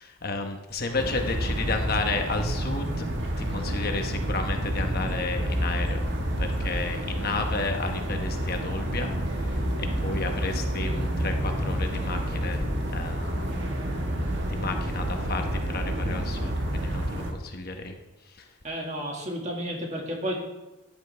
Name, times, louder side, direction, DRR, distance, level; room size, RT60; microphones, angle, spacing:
voice 1, 0.0-3.0 3.4-6.0 6.4-12.7 12.9-13.5 14.5-17.9 18.3-18.5, left 3 dB, 45° left, 4 dB, 1.1 m, -32 dB
sound 1, 1.0-17.3, right 1 dB, 50° right, 1.6 m, -29 dB
voice 2, 18.6-20.4, equal, 30° right, 0 dB, 1.9 m, -32 dB
13.0 x 10.5 x 3.4 m, 1.0 s
head